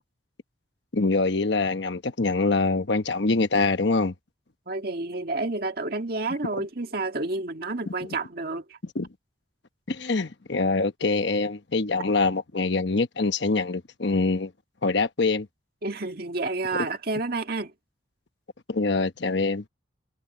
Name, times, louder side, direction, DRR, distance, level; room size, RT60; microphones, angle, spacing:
voice 1, 0.9-4.1 8.9-9.1 9.9-14.5 14.8-15.5 18.7-19.6, left 3 dB, 60° left, 1.1 m, -24 dB
voice 2, 4.7-8.8 15.8-17.7, right 2 dB, 50° right, 1.9 m, -30 dB
head